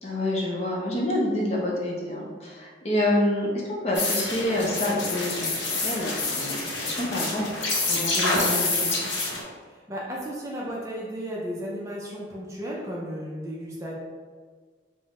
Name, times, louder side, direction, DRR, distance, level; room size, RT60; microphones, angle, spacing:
voice 1, 0.0-8.9, left 1 dB, 35° left, -3 dB, 0.6 m, -28 dB
sound 1, 3.9-9.4, left 3 dB, 80° left, 0.7 m, -27 dB
voice 2, 9.7-13.9, equal, 15° right, -5 dB, 0.4 m, -34 dB
3.6 x 2.1 x 3.6 m, 1.6 s
head